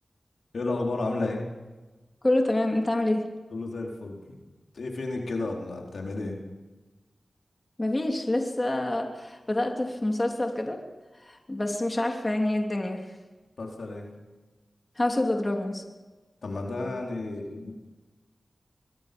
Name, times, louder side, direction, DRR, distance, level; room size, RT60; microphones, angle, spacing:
voice 1, 0.5-1.4 3.5-4.2 4.7-6.4 13.6-14.1 16.4-17.7, left 2 dB, 85° left, 0 dB, 4.3 m, -32 dB
voice 2, 2.2-3.3 7.8-10.8 11.3-13.0 15.0-15.8, left 1 dB, 30° left, 2 dB, 3.3 m, -27 dB
24.0 x 22.5 x 5.4 m, 1.2 s
cardioid pair, 45°, 0 cm